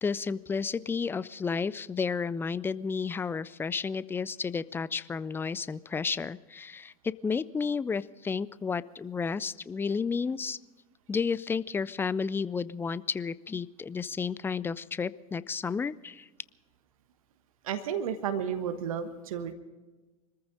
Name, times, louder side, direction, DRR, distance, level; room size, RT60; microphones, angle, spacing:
voice 1, 0.0-10.6 11.1-16.3, left 5 dB, 10° left, 19 dB, 0.4 m, -32 dB
voice 2, 17.6-19.5, right 8 dB, 60° right, 9 dB, 1.3 m, -32 dB
25.0 x 14.5 x 3.9 m, 1.2 s
figure-of-eight pair, 80°, 20 cm